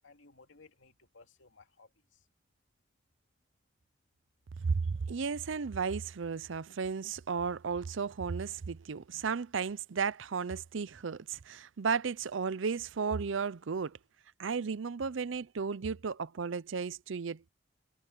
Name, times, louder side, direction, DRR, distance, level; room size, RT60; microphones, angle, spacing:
voice 1, 0.0-2.3, left 3 dB, 85° left, 2.6 m, -59 dB
voice 2, 4.6-14.0 14.4-17.5, right 5 dB, 80° right, 0.6 m, -34 dB
head